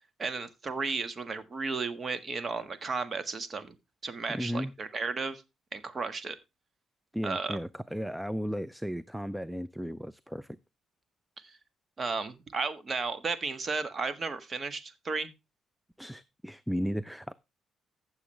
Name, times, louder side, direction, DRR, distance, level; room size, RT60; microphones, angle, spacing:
voice 1, 0.2-3.7 4.0-5.4 5.7-6.4 7.2-7.6 12.0-15.3, right 4 dB, 40° right, 1.6 m, -34 dB
voice 2, 4.3-4.7 7.1-10.6 16.0-17.3, equal, 5° right, 0.5 m, -35 dB
15.0 x 7.1 x 3.3 m
cardioid pair, 90°, 0 cm